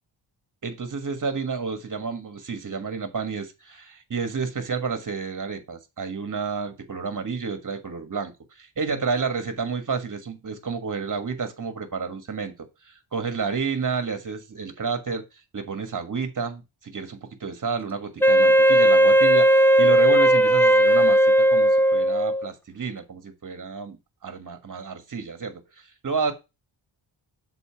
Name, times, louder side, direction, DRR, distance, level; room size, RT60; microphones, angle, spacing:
voice 1, 0.6-8.3 8.6-12.5 12.8-15.2 15.5-24.0 24.2-25.6 26.0-26.3, right 5 dB, 40° right, 1.5 m, -30 dB
Wind instrument woodwind instrument, 18.2-22.5, right 1 dB, 5° left, 0.5 m, -17 dB
6.9 x 4.1 x 5.7 m
wide cardioid pair, 105°, 47 cm